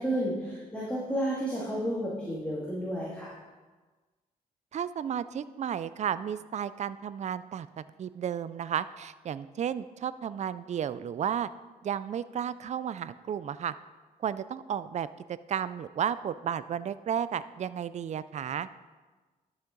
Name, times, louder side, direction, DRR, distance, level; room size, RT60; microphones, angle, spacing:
voice 1, 0.0-3.3, equal, 10° left, -7 dB, 2.5 m, -31 dB
voice 2, 4.7-11.5 11.8-13.7 14.2-15.1 15.5-18.7, right 8 dB, 50° right, 15 dB, 0.4 m, -33 dB
12.0 x 7.2 x 3.9 m, 1.3 s
cardioid pair, 75°, 15 cm